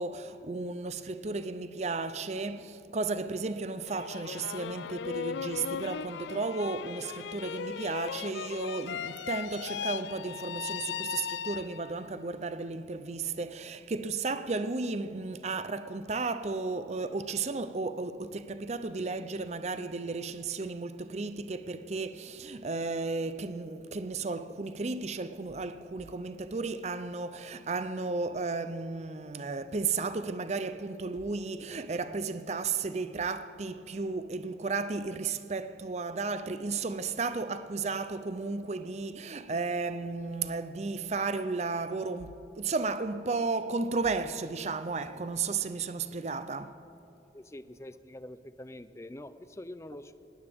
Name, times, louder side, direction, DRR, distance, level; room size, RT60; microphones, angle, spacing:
voice 1, 0.0-46.8, right 3 dB, 40° right, 0.5 m, -34 dB
sound 1, 3.8-12.1, left 7 dB, 80° left, 0.3 m, -38 dB
voice 2, 47.3-50.1, left 1 dB, 15° left, 0.5 m, -45 dB
19.5 x 17.0 x 3.6 m
head